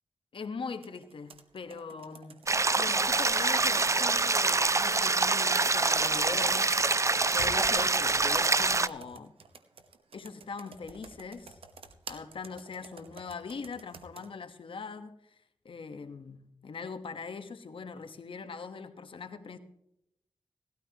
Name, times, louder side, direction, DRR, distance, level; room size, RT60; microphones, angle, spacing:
voice 1, 0.3-2.4 2.7-9.3 10.1-11.6 12.1-15.2 15.6-19.6, left 5 dB, 70° left, 1.3 m, -41 dB
Computer keyboard, 0.8-14.3, right 5 dB, 85° right, 1.1 m, -51 dB
sound 1, 2.5-8.9, right 3 dB, 35° right, 0.6 m, -25 dB
18.0 x 13.0 x 3.0 m
cardioid pair, 45°, 9 cm